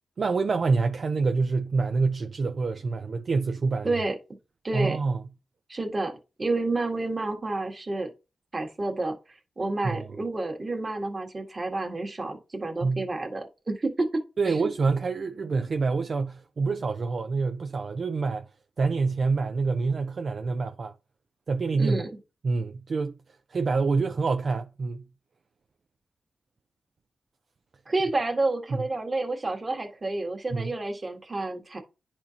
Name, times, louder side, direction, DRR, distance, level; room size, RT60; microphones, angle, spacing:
voice 1, 0.2-3.9 4.7-5.2 9.8-10.1 12.8-13.1 14.4-18.5 18.8-20.9 21.5-22.0 22.4-23.2 23.5-25.1 28.7-28.8 30.5-30.7, right 4 dB, 55° right, 0.5 m, -26 dB
voice 2, 3.8-4.2 4.6-5.0 5.7-8.1 8.5-9.1 9.6-14.7 21.8-22.1 27.9-31.8, right 2 dB, 30° right, 1.6 m, -29 dB
10.5 x 4.4 x 2.9 m
wide cardioid pair, 105°, 0 cm